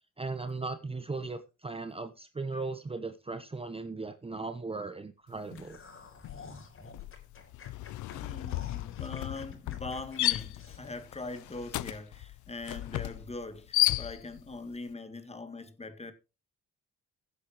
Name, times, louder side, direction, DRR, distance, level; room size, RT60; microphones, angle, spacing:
voice 1, 0.2-5.8, right 3 dB, 20° right, 0.9 m, -37 dB
sound 1, 5.5-5.8 6.1-14.5, left 17 dB, 75° left, 0.5 m, -34 dB
sound 2, 5.5-11.8 12.2-12.3 12.7-12.9, left 4 dB, 45° left, 4.2 m, -51 dB
voice 2, 8.1-16.1, left 3 dB, 20° left, 2.0 m, -42 dB
16.0 x 8.4 x 3.1 m
cardioid pair, 90°, 30 cm